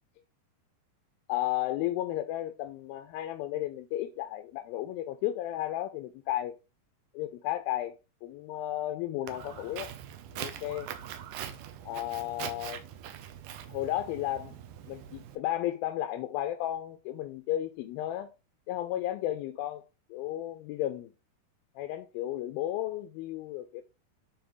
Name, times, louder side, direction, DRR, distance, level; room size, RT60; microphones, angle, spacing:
voice 1, 1.3-6.6 7.1-9.9 10.4-10.9 11.9-12.8 13.7-14.6 14.9-18.3 18.7-19.8 20.1-21.1 21.8-23.8, left 13 dB, 85° left, 2.5 m, -33 dB
Walk footsteps, 9.3-15.4, right 10 dB, 75° right, 2.1 m, -42 dB
9.3 x 4.0 x 3.1 m
omnidirectional pair, 4.3 m